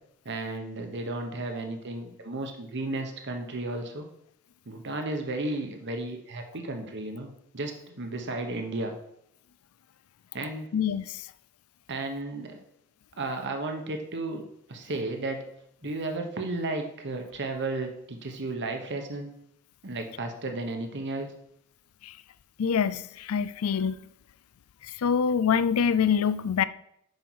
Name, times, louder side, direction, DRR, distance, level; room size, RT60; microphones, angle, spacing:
voice 1, 0.2-4.1 4.7-7.3 7.5-9.0 10.3-10.7 11.9-12.6 13.2-14.4 14.7-15.4 15.8-19.3 19.8-21.3, right 2 dB, 55° right, 1.1 m, -33 dB
voice 2, 10.7-11.2 22.0-22.1 22.6-24.0 25.0-26.6, left 7 dB, 75° left, 0.4 m, -25 dB
9.6 x 5.4 x 4.7 m
head